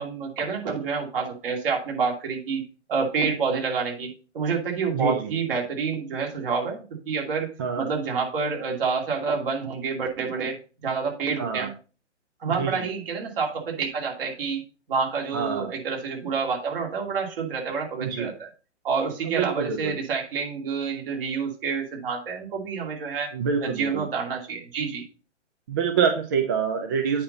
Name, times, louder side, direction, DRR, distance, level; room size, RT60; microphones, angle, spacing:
voice 1, 0.0-2.6 2.9-4.1 4.3-7.5 7.8-10.6 10.8-11.7 12.4-14.6 14.9-18.5 18.8-23.3 23.6-25.0, right 5 dB, 50° right, 0 dB, 2.8 m, -28 dB
voice 2, 4.9-5.3 7.6-7.9 11.4-11.7 12.5-12.8 15.3-15.7 18.0-18.3 19.2-19.9 23.3-24.0 25.7-27.2, right 6 dB, 20° right, 5 dB, 0.4 m, -26 dB
8.6 x 5.6 x 4.0 m, 0.35 s
figure-of-eight pair, 125°, 37 cm